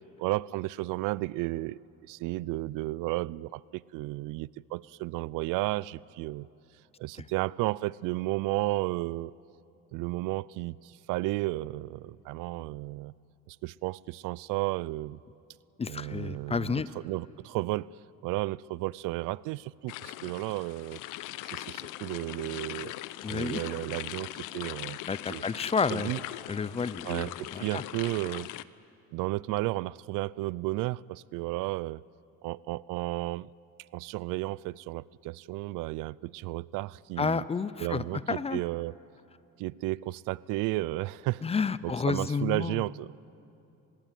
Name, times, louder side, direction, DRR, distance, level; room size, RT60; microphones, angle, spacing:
voice 1, 0.2-1.7 2.1-3.6 3.9-6.4 7.0-9.3 9.9-10.7 11.1-12.0 12.3-13.1 13.6-15.2 15.9-17.9 18.2-19.9 20.2-21.0 21.5-21.6 22.0-22.9 23.3-24.3 24.5-25.0 25.3-25.4 25.9-26.2 27.0-28.5 29.1-31.0 31.3-32.0 32.4-33.5 33.9-37.4 37.8-38.9 39.6-41.4 41.8-43.1, right 20 dB, 80° right, 23 dB, 0.5 m, -32 dB
voice 2, 15.8-16.9 23.2-23.6 25.1-26.1 26.5-27.8 37.2-38.6 41.4-42.8, left 5 dB, 20° left, 17 dB, 0.6 m, -30 dB
sound 1, 19.9-28.6, left 16 dB, 75° left, 0.8 m, -40 dB
25.0 x 21.0 x 9.2 m, 2.8 s
cardioid pair, 125°, 31 cm